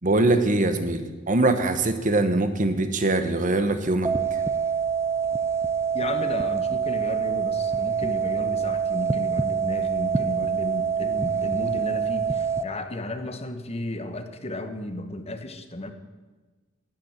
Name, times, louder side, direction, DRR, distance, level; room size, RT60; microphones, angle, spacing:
voice 1, 0.0-4.1, right 2 dB, 40° right, 9 dB, 1.1 m, -22 dB
sound 1, 4.0-12.6, right 6 dB, 15° right, 0.4 m, -25 dB
voice 2, 5.9-15.9, left 1 dB, 30° left, 8 dB, 1.1 m, -33 dB
11.5 x 9.1 x 8.9 m, 1.3 s
head